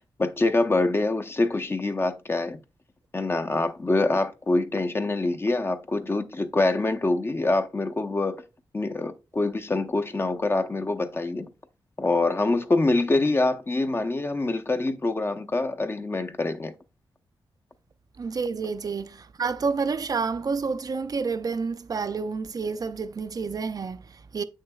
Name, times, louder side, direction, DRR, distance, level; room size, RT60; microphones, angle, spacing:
voice 1, 0.2-2.6 3.1-8.4 8.7-11.5 12.0-16.7, left 2 dB, 25° left, 0.6 m, -25 dB
voice 2, 18.2-24.4, right 5 dB, 45° right, 0.4 m, -29 dB
7.9 x 6.4 x 2.2 m
cardioid pair, 90°, 9 cm